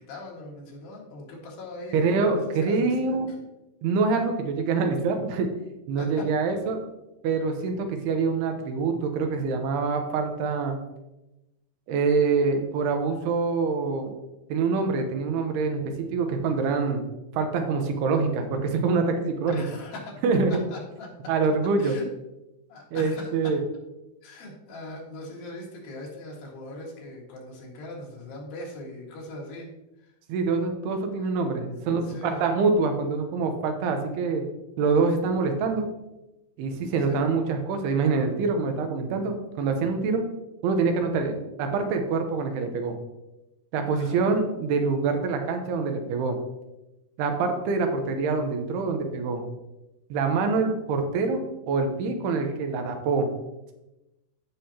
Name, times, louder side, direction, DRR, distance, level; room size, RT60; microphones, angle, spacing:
voice 1, 0.1-3.2 6.0-6.3 19.5-20.2 20.5-21.1 21.8-22.1 22.7-23.3 24.2-29.7 30.0-30.1 32.0-32.4 37.0-37.3 43.9-44.2, left 1 dB, 90° left, -2 dB, 3.9 m, -40 dB
voice 2, 1.9-3.3 3.8-5.5 5.9-6.8 7.2-10.8 11.9-14.1 14.5-17.0 17.3-19.6 20.2-20.6 21.3-22.0 22.9-23.6 30.3-34.5 34.8-35.9 36.6-40.2 40.6-43.0 43.7-46.4 47.2-49.5 50.1-51.4 51.7-53.3, right 4 dB, 80° right, 5 dB, 2.9 m, -25 dB
14.0 x 5.6 x 2.8 m, 0.96 s
omnidirectional pair, 4.6 m